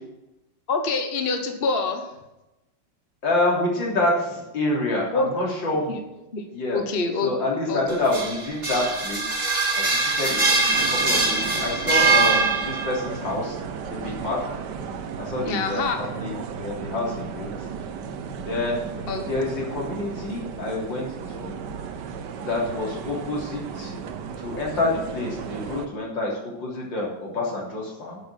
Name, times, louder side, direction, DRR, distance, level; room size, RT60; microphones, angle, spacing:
voice 1, 0.7-2.0 5.1-5.3 5.9-6.0 6.3-6.4 6.7-7.3 7.7-8.0 15.4-16.0 19.1-19.2, left 4 dB, 35° left, 5 dB, 1.2 m, -25 dB
voice 2, 3.2-5.9 6.5-6.8 7.2-9.4 9.8-13.6 13.9-14.4 15.2-17.5 18.4-18.8 19.3-21.6 22.4-23.9 24.4-28.2, left 2 dB, 75° left, -3 dB, 4.1 m, -27 dB
sound 1, 7.9-13.1, right 3 dB, 20° right, 1.9 m, -22 dB
sound 2, 10.7-25.9, right 6 dB, 70° right, 1.5 m, -35 dB
10.0 x 7.4 x 7.6 m, 0.96 s
omnidirectional pair, 2.0 m